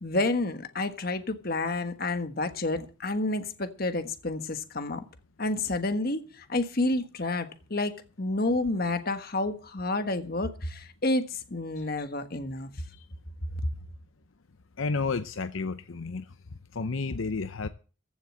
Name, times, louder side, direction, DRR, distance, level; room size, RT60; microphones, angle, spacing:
voice 1, 0.0-5.0 5.4-12.7, left 2 dB, 45° left, 1.4 m, -30 dB
voice 2, 14.8-16.3 16.7-17.7, left 4 dB, 75° left, 0.7 m, -31 dB
15.0 x 6.7 x 7.5 m
head